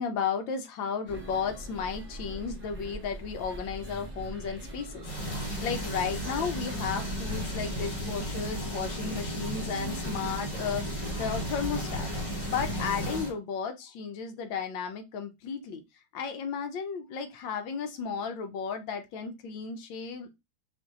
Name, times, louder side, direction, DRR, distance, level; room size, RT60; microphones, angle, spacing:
voice 1, 0.0-12.1 12.5-15.8 16.1-20.3, left 6 dB, 70° left, 7 dB, 1.3 m, -34 dB
sound 1, 1.1-13.1, right 1 dB, 10° right, 0.8 m, -43 dB
sound 2, 5.0-13.3, equal, 45° left, 0.4 m, -34 dB
4.3 x 2.6 x 3.6 m, 0.23 s
omnidirectional pair, 2.2 m